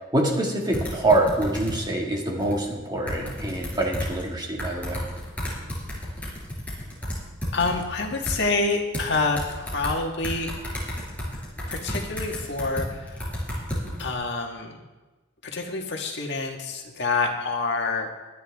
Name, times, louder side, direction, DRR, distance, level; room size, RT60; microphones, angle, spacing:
voice 1, 0.0-5.0, right 1 dB, 20° right, -1 dB, 2.1 m, -25 dB
sound 1, 0.7-1.8 2.4-2.5 3.1-4.2 4.6-8.4 8.9-9.9 10.2-14.1, equal, 5° left, 4.7 m, -32 dB
voice 2, 7.5-10.5 11.7-13.3 14.0-14.8 15.4-18.2, left 3 dB, 60° left, 2 dB, 1.7 m, -27 dB
22.0 x 9.9 x 3.6 m, 1.2 s
head